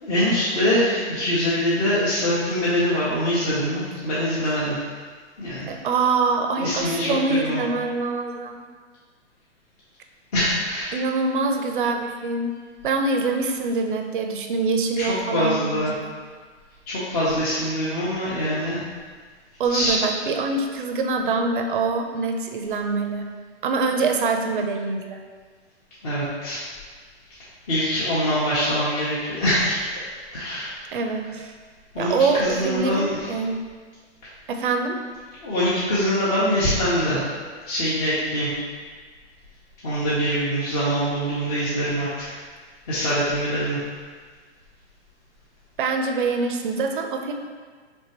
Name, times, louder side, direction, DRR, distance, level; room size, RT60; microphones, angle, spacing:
voice 1, 0.0-4.8 5.4-5.7 6.6-7.6 10.3-10.9 15.0-15.1 15.3-15.9 16.9-18.8 19.7-20.0 26.0-26.6 27.7-29.8 30.3-30.7 31.9-32.1 32.4-33.3 35.4-37.3 37.7-38.5 39.8-42.1 42.9-43.8, equal, 35° left, -10 dB, 0.9 m, -23 dB
voice 2, 5.7-8.6 10.9-12.5 12.8-16.1 19.6-23.2 23.6-25.2 30.9-31.5 32.0-33.6 34.5-35.0 45.8-47.3, right 4 dB, 45° right, 4 dB, 0.5 m, -24 dB
4.3 x 3.3 x 2.9 m, 1.5 s
hypercardioid pair, 160°, 35 cm